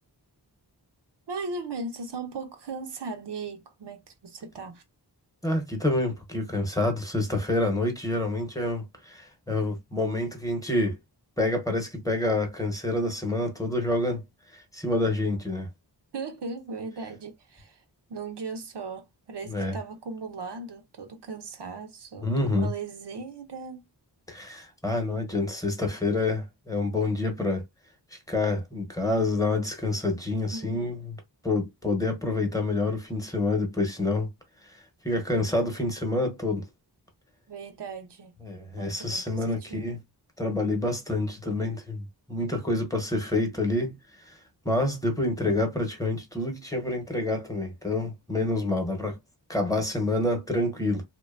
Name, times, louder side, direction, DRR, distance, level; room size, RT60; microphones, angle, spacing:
voice 1, 1.3-4.8 16.1-17.8 18.1-23.8 30.5-31.1 37.5-38.3 38.8-40.0 48.4-48.5, right 4 dB, 75° right, 0.6 m, -38 dB
voice 2, 5.4-11.0 11.4-14.2 14.5-15.7 19.5-19.8 22.2-22.7 24.3-27.6 28.1-31.1 31.4-34.3 35.0-36.6 38.4-40.0 40.4-44.0 44.3-44.4 44.6-49.2 49.5-51.0, left 2 dB, 10° left, 0.8 m, -27 dB
2.6 x 2.2 x 2.4 m
wide cardioid pair, 65°, 42 cm